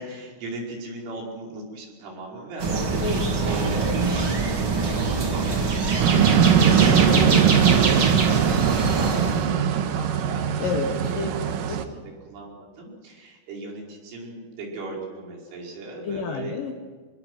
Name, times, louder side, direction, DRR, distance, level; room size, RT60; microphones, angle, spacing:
voice 1, 0.0-6.8 7.4-16.6, right 2 dB, 65° right, -1 dB, 7.5 m, -38 dB
sound 1, 2.6-9.5, right 4 dB, 40° right, 1.9 m, -24 dB
voice 2, 3.0-3.3 6.9-7.4 10.6-11.3 11.7-11.8 16.0-16.7, left 5 dB, 70° left, 5 dB, 2.1 m, -29 dB
sound 2, 6.0-11.8, right 8 dB, 85° right, 1.9 m, -20 dB
26.5 x 22.0 x 6.3 m, 1.5 s
omnidirectional pair, 5.9 m